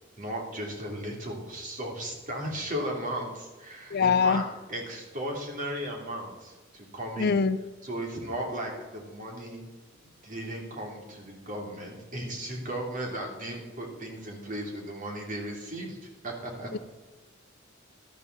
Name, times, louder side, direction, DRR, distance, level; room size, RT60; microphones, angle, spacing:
voice 1, 0.2-4.4 4.7-7.4 7.8-9.6 10.2-16.0 16.2-16.7, right 1 dB, 40° right, 1 dB, 3.2 m, -36 dB
voice 2, 3.9-4.4 7.2-7.6, left 5 dB, 55° left, 12 dB, 0.6 m, -23 dB
13.0 x 12.5 x 4.1 m, 1.2 s
head